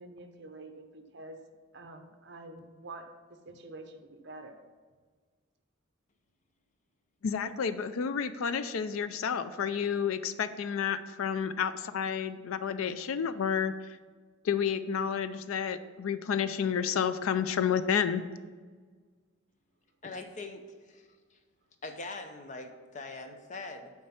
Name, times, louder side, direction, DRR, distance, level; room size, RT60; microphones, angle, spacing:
voice 1, 0.0-1.4 1.7-4.6, right 2 dB, 55° right, 6 dB, 0.7 m, -47 dB
voice 2, 7.2-13.7 14.4-18.3, left 7 dB, 80° left, 12 dB, 0.4 m, -30 dB
voice 3, 20.0-21.4 21.8-23.9, left 3 dB, 35° left, 5 dB, 0.6 m, -42 dB
7.6 x 4.5 x 5.7 m, 1.5 s
head